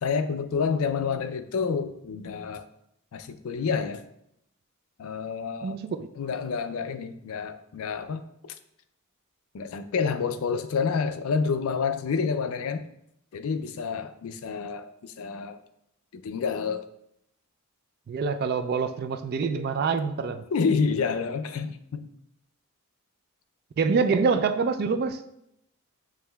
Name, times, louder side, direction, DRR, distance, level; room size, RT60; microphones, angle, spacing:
voice 1, 0.0-2.6 3.1-4.0 5.0-5.8 6.2-8.2 9.5-12.8 13.3-15.6 16.1-16.8 20.5-22.1, left 5 dB, 75° left, 9 dB, 0.4 m, -28 dB
voice 2, 5.6-6.1 18.1-20.4 23.8-25.2, right 5 dB, 45° right, 9 dB, 0.3 m, -26 dB
7.4 x 3.1 x 2.3 m, 0.77 s
head